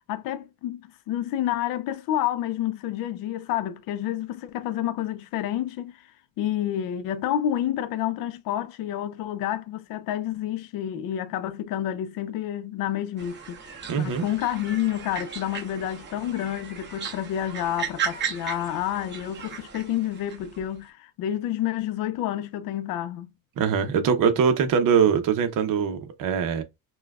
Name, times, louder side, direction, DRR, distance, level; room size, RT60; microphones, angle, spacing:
voice 1, 0.1-23.3, left 11 dB, 60° left, 0.5 m, -29 dB
sound 1, 13.2-20.6, right 7 dB, 30° right, 1.0 m, -36 dB
voice 2, 13.9-14.3 23.6-26.6, right 7 dB, 55° right, 0.8 m, -22 dB
5.7 x 2.3 x 2.3 m
cardioid pair, 155°, 38 cm